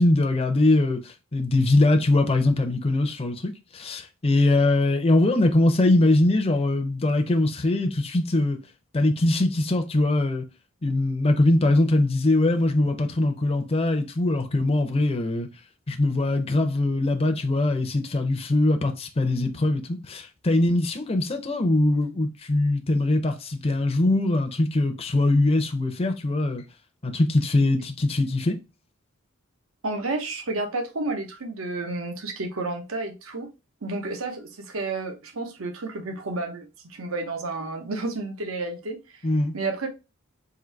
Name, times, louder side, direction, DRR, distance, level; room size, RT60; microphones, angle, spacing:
voice 1, 0.0-8.6 8.9-10.4 10.8-15.5 15.9-26.6 27.0-28.6 39.2-39.5, left 2 dB, 30° left, 0.6 m, -22 dB
voice 2, 29.8-33.5 33.8-39.2 39.5-39.9, right 2 dB, 80° right, 0.9 m, -31 dB
3.8 x 2.7 x 4.5 m
head